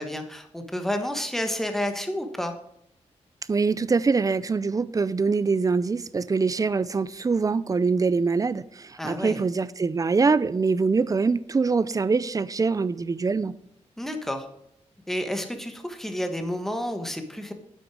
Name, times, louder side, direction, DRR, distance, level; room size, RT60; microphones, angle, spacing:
voice 1, 0.0-2.5 9.0-9.4 14.0-14.5 15.1-17.5, left 1 dB, 5° left, 1.3 m, -30 dB
voice 2, 3.5-13.5, right 4 dB, 30° right, 0.5 m, -24 dB
9.1 x 7.9 x 4.8 m
wide cardioid pair, 100°, 12 cm